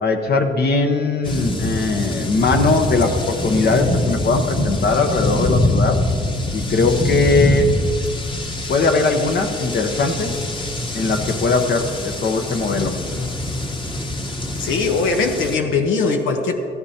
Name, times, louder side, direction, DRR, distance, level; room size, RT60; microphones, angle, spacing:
voice 1, 0.0-6.0 6.5-7.7 8.7-10.4 10.9-13.0, left 3 dB, 55° left, 4 dB, 1.0 m, -20 dB
sound 1, 1.2-15.6, left 1 dB, 25° left, 1.2 m, -24 dB
voice 2, 14.6-16.5, left 4 dB, 80° left, 4 dB, 0.9 m, -20 dB
15.0 x 13.5 x 2.9 m, 2.5 s
cardioid pair, 90°, 20 cm